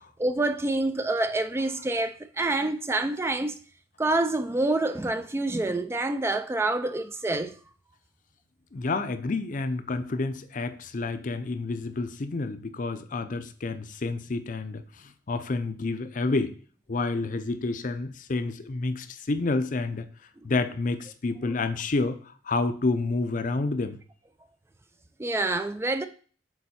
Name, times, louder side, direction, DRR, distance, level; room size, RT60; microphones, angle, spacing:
voice 1, 0.2-3.5 4.0-7.5 25.2-26.1, right 2 dB, 15° right, 0.3 m, -27 dB
voice 2, 8.7-16.5 16.9-20.0 20.4-24.0, left 3 dB, 45° left, 0.5 m, -29 dB
6.9 x 4.1 x 4.2 m
head